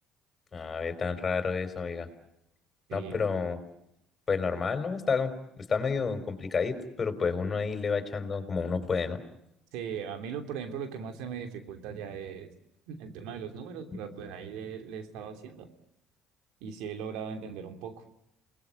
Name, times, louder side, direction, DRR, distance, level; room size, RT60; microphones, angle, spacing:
voice 1, 0.5-2.1 2.9-3.6 4.3-5.3 5.7-9.2, left 5 dB, 35° left, 8 dB, 5.0 m, -30 dB
voice 2, 2.9-3.2 9.7-12.5 12.9-15.7 16.6-18.1, right 7 dB, 80° right, 7 dB, 3.0 m, -39 dB
29.0 x 20.5 x 9.0 m, 0.82 s
supercardioid pair, 70°, 0 cm